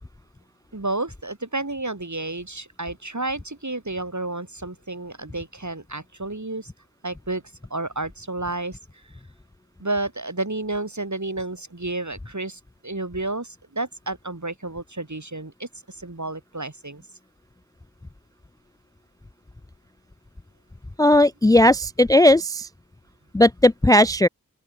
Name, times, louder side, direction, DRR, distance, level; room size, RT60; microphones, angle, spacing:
voice 1, 0.7-6.7 7.0-7.4 7.7-8.8 9.8-15.7 16.0-17.0, right 2 dB, 55° right, 7.3 m, -31 dB
voice 2, 21.0-22.7 23.3-24.3, left 1 dB, 10° left, 0.4 m, -16 dB
open air
wide cardioid pair, 40°, 35 cm